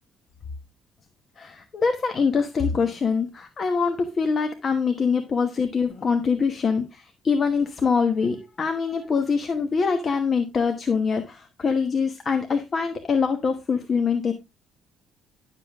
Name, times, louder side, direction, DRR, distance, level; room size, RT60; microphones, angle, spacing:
voice 1, 1.4-14.3, left 5 dB, 30° left, 6 dB, 1.1 m, -24 dB
11.0 x 7.4 x 3.5 m, 0.24 s
cardioid pair, 165°, 0 cm